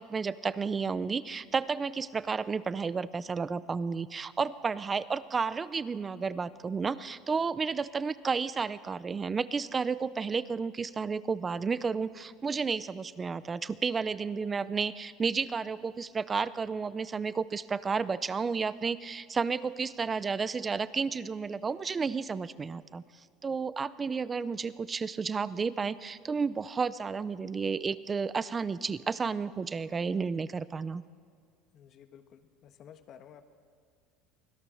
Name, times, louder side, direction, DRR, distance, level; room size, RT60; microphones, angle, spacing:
voice 1, 0.0-23.0 23.4-31.0, right 5 dB, 25° right, 17 dB, 0.6 m, -32 dB
voice 2, 31.7-33.5, left 9 dB, 45° left, 8 dB, 1.3 m, -53 dB
25.0 x 16.5 x 6.4 m, 2.2 s
supercardioid pair, 120°, 0 cm